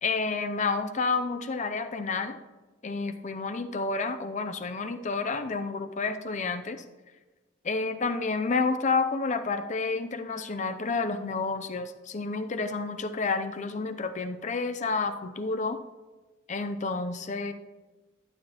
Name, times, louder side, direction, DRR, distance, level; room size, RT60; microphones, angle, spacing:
voice 1, 0.0-2.4 2.8-6.8 7.6-15.8 16.5-17.5, left 4 dB, 40° left, 9 dB, 0.5 m, -30 dB
12.0 x 8.7 x 3.0 m, 1.3 s
head